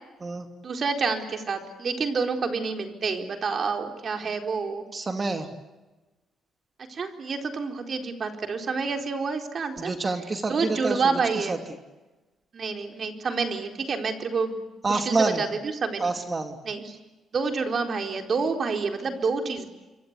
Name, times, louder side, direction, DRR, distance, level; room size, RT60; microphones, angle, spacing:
voice 1, 0.6-4.8 6.9-9.9 10.5-11.6 12.5-15.5 15.8-16.1 16.6-17.0 17.3-19.6, right 4 dB, 45° right, 4 dB, 4.3 m, -28 dB
voice 2, 4.9-5.5 9.8-11.6 14.8-15.4 16.0-16.6, right 3 dB, 30° right, 6 dB, 2.8 m, -27 dB
28.0 x 24.0 x 8.3 m, 1.1 s
cardioid pair, 90°, 0 cm